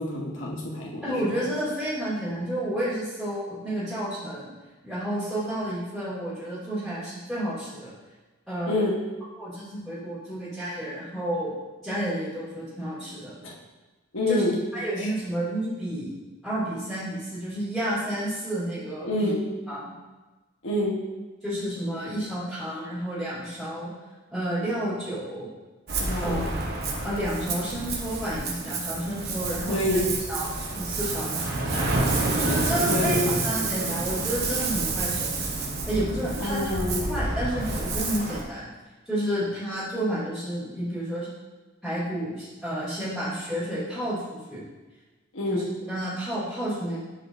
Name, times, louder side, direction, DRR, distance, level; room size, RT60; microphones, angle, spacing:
voice 1, 0.0-1.0 8.7-8.9 14.1-14.5 19.0-19.4 20.6-21.0 26.0-26.5 29.7-30.1 32.9-33.4 36.4-37.1 45.3-45.6, left 1 dB, 70° left, -4 dB, 1.2 m, -26 dB
voice 2, 1.0-4.5 4.8-7.9 8.5-8.9 9.4-11.5 11.8-13.3 14.3-14.4 14.7-16.1 16.4-19.3 19.7-19.9 21.4-23.9 24.3-25.5 26.2-26.7 27.0-30.0 30.3-35.3 35.8-36.7 37.1-38.7 39.1-41.3 41.8-44.6 45.5-47.0, right 1 dB, ahead, -13 dB, 2.5 m, -31 dB
Ocean, 25.9-38.4, right 3 dB, 55° right, 1.1 m, -29 dB
11.0 x 4.9 x 2.7 m, 1.2 s
head